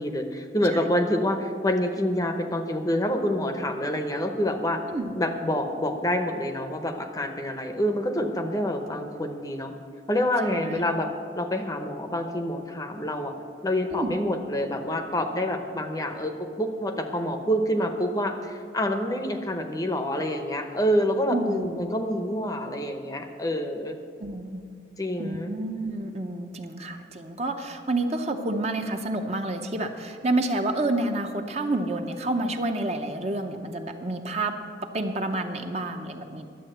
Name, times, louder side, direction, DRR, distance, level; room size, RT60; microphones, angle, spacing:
voice 1, 0.0-4.8 5.1-9.7 10.1-11.1 11.4-13.3 13.6-24.0 25.0-25.5, left 1 dB, 20° left, 6 dB, 0.7 m, -27 dB
voice 2, 4.9-5.2 10.5-10.8 13.9-14.2 21.3-21.7 24.2-24.7 25.2-36.5, right 2 dB, 35° right, 5 dB, 0.7 m, -29 dB
11.0 x 8.1 x 7.8 m, 2.3 s
head